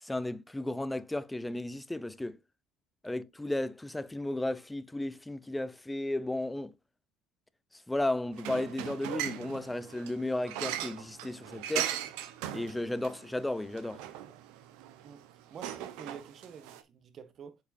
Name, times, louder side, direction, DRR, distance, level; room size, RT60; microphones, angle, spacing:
voice 1, 0.0-2.4 3.0-6.7 7.7-11.9 12.5-14.0, left 1 dB, 10° left, 0.6 m, -34 dB
sound 1, 8.3-16.8, right 11 dB, 80° right, 0.8 m, -39 dB
voice 2, 15.5-17.6, right 7 dB, 50° right, 1.2 m, -48 dB
8.3 x 4.9 x 2.6 m
supercardioid pair, 85°, 0 cm